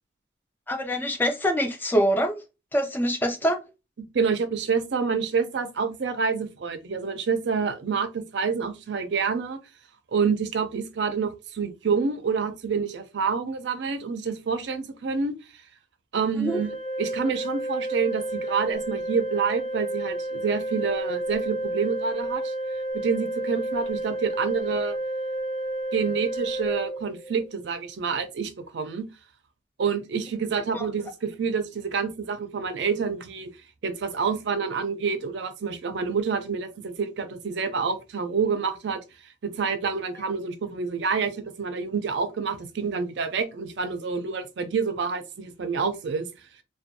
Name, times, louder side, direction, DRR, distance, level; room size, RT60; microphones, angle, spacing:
voice 1, 0.7-2.4 2.7-3.6 16.4-16.6 30.7-30.9, equal, 10° left, 0.3 m, -24 dB
voice 2, 4.0-9.6 10.1-15.3 16.1-16.7 17.0-22.5 22.9-25.0 25.9-29.1 29.8-33.5 33.8-39.0 39.4-46.3, right 5 dB, 65° right, 0.4 m, -28 dB
Organ, 16.4-27.5, right 1 dB, 65° left, 0.7 m, -31 dB
2.5 x 2.2 x 2.6 m
head